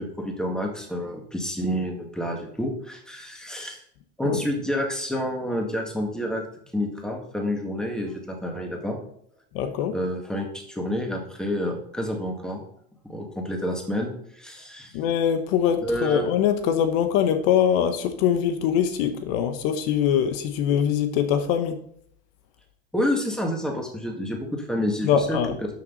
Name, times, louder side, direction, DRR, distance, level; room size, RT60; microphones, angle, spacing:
voice 1, 0.0-3.8 4.2-6.4 6.7-9.0 9.6-12.6 13.0-14.9 15.8-16.2 22.9-25.7, equal, ahead, 1 dB, 2.0 m, -29 dB
voice 2, 9.5-9.9 14.9-21.8 25.0-25.5, left 9 dB, 60° left, 8 dB, 1.2 m, -23 dB
12.5 x 6.3 x 4.1 m, 0.66 s
supercardioid pair, 145°, 33 cm